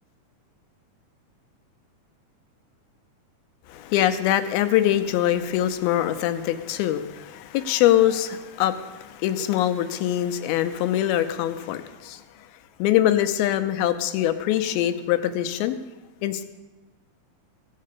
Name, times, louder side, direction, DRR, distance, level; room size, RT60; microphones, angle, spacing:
voice 1, 3.7-12.2 12.8-15.8 16.2-16.4, left 12 dB, 90° left, 10 dB, 2.6 m, -23 dB
16.0 x 6.5 x 6.7 m, 1.2 s
omnidirectional pair, 4.2 m